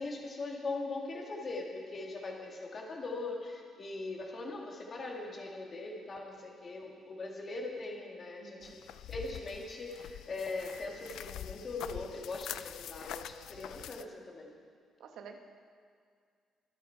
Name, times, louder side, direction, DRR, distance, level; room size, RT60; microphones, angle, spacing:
voice 1, 0.0-14.5, left 3 dB, 35° left, 0 dB, 2.0 m, -41 dB
voice 2, 8.4-8.8 11.9-12.1 14.0-14.1 15.0-15.4, right 6 dB, 70° right, 5 dB, 1.2 m, -50 dB
sound 1, 8.6-14.1, left 11 dB, 80° left, 0.4 m, -45 dB
24.0 x 8.2 x 4.6 m, 2.1 s
cardioid pair, 160°, 0 cm